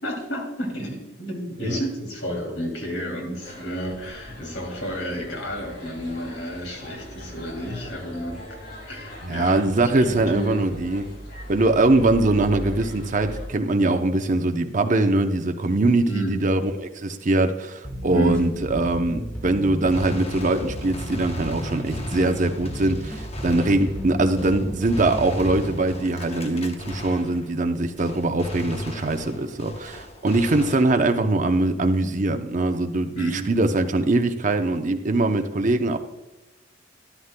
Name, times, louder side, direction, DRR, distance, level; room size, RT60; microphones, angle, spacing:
voice 1, 0.0-8.5 8.8-10.6 16.1-16.4 18.1-18.4 33.1-33.5, equal, 85° left, 0 dB, 2.8 m, -31 dB
sound 1, 3.4-13.5, equal, 60° left, 2.7 m, -39 dB
voice 2, 9.2-11.1 11.5-36.0, right 2 dB, 40° right, 6 dB, 0.6 m, -22 dB
sound 2, 17.8-25.9, equal, 10° left, 1.2 m, -34 dB
Gunshot gunfire, 19.9-27.7 28.0-31.3, left 1 dB, 35° left, 0.9 m, -37 dB
13.0 x 11.0 x 2.2 m, 1.0 s
head